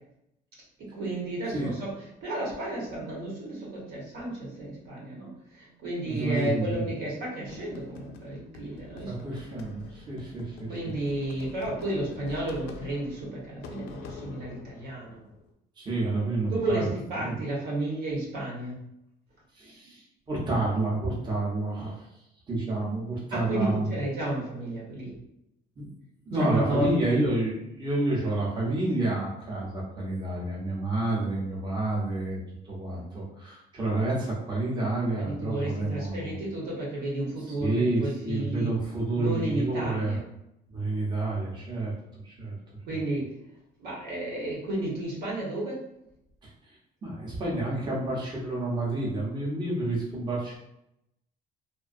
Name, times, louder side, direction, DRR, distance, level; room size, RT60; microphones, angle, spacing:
voice 1, 0.8-1.9 2.2-5.3 5.6-9.4 10.7-15.2 16.5-18.7 23.3-25.1 26.4-27.2 35.2-38.7 39.1-40.2 42.9-43.3 43.8-45.8, right 1 dB, 80° right, -4 dB, 1.1 m, -32 dB
voice 2, 6.1-6.9 9.1-10.7 15.8-16.9 17.2-17.4 19.5-21.9 22.5-23.9 25.8-26.0 26.3-32.4 32.7-36.4 37.5-40.2 40.7-41.9 42.2-42.6 46.4-46.5 47.0-50.6, right 2 dB, 25° right, -5 dB, 0.7 m, -29 dB
sound 1, 7.4-15.5, left 4 dB, 80° left, 0.4 m, -46 dB
2.6 x 2.2 x 2.5 m, 0.82 s
cardioid pair, 110°, 17 cm